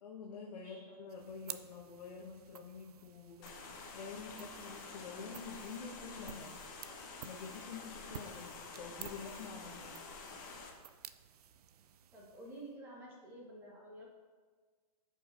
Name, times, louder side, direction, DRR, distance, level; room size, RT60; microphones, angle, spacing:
voice 1, 0.0-6.5 7.2-10.0, left 5 dB, 80° left, -3 dB, 1.1 m, -48 dB
sound 1, 1.1-12.8, right 9 dB, 70° right, 0.5 m, -53 dB
sound 2, 3.4-10.7, left 4 dB, 30° left, 0.9 m, -49 dB
voice 2, 12.1-14.1, right 1 dB, 10° right, -4 dB, 1.1 m, -51 dB
14.0 x 5.4 x 2.5 m, 1.5 s
hypercardioid pair, 170°, 20 cm